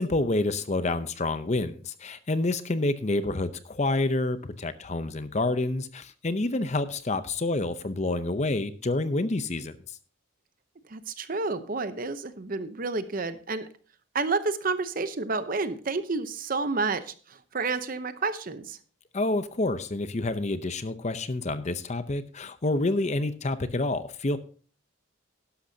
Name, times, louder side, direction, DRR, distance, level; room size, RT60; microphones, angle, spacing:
voice 1, 0.0-9.8 19.1-24.4, left 2 dB, 35° left, 12 dB, 0.7 m, -28 dB
voice 2, 10.9-13.7 14.1-18.8, right 3 dB, 45° right, 12 dB, 0.8 m, -30 dB
12.0 x 11.5 x 2.8 m, 0.40 s
head